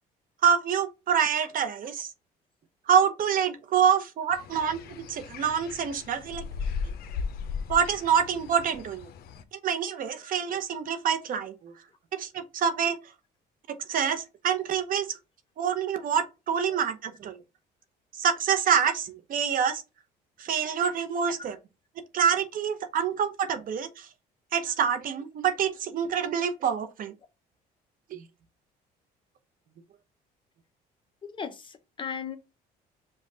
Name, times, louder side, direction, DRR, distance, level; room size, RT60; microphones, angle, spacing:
voice 1, 0.4-2.1 2.9-6.4 7.7-9.1 9.5-11.7 12.1-13.0 13.7-15.2 15.6-17.4 18.1-19.8 20.4-21.6 22.1-24.1 24.5-27.1 28.1-28.2, right 7 dB, 55° right, 0.7 m, -26 dB
sound 1, 4.3-9.4, left 5 dB, 65° left, 0.6 m, -37 dB
voice 2, 31.2-32.4, left 6 dB, 30° left, 0.8 m, -36 dB
5.3 x 2.3 x 3.8 m
cardioid pair, 110°, 17 cm